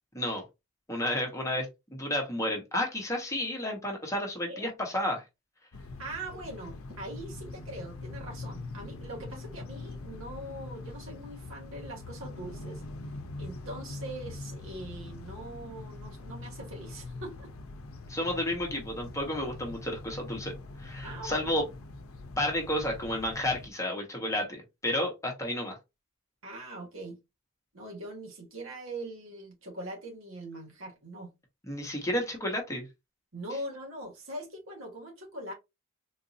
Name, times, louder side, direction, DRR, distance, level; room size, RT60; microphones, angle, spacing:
voice 1, 0.9-5.2 18.1-20.5 20.8-21.6 22.4-25.8 31.7-32.9, left 1 dB, 15° left, 1.0 m, -31 dB
sound 1, 5.7-23.7, left 2 dB, 75° left, 0.6 m, -43 dB
voice 2, 6.0-12.8 13.4-17.5 21.0-21.5 26.4-27.2 27.7-31.3 33.3-35.5, right 1 dB, 65° right, 1.4 m, -42 dB
3.9 x 2.6 x 2.6 m
head